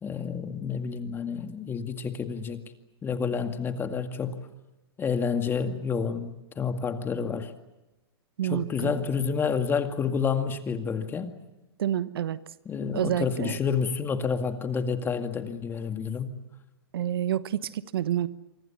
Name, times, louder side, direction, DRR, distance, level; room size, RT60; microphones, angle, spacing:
voice 1, 0.0-2.6 3.0-4.4 5.0-7.5 8.5-11.3 12.7-16.3, left 6 dB, 15° left, 7 dB, 2.1 m, -29 dB
voice 2, 8.4-8.9 11.8-12.4 12.9-13.6 16.9-18.3, right 11 dB, 70° right, 15 dB, 1.1 m, -28 dB
27.5 x 25.0 x 7.2 m, 1.0 s
hypercardioid pair, 125°, 13 cm